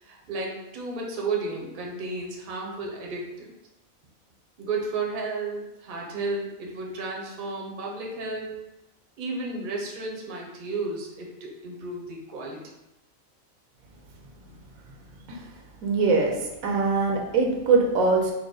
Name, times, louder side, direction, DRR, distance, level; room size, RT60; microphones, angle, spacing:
voice 1, 0.0-3.5 4.6-8.6 9.2-12.6, right 3 dB, 45° right, -1 dB, 0.8 m, -33 dB
voice 2, 15.8-18.3, right 4 dB, 75° right, 0 dB, 1.1 m, -22 dB
4.7 x 2.2 x 3.8 m, 0.94 s
omnidirectional pair, 1.5 m